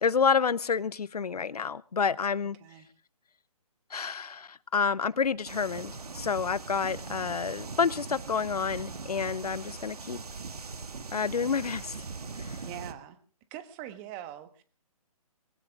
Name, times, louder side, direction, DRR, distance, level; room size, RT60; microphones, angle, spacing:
voice 1, 0.0-2.6 3.9-10.2 11.1-12.0 12.4-12.6, left 6 dB, 90° left, 20 dB, 0.7 m, -29 dB
voice 2, 2.6-2.9 12.6-13.2 13.5-14.6, right 11 dB, 20° right, 12 dB, 1.3 m, -42 dB
sound 1, 5.4-12.9, right 4 dB, 85° right, 1.7 m, -40 dB
20.5 x 17.0 x 3.6 m, 0.37 s
hypercardioid pair, 150°, 19 cm